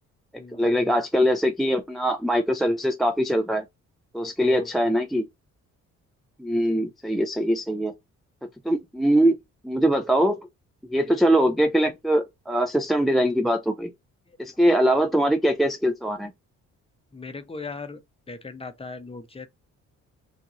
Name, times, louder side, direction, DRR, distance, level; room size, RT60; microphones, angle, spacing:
voice 1, 0.6-3.6 4.1-5.2 6.4-7.9 8.6-9.3 9.6-10.4 10.9-13.9 14.4-16.3, equal, ahead, 0.4 m, -22 dB
voice 2, 17.1-18.0 18.3-19.5, left 3 dB, 20° left, 0.8 m, -38 dB
4.4 x 2.6 x 3.0 m
cardioid pair, 90°, 30 cm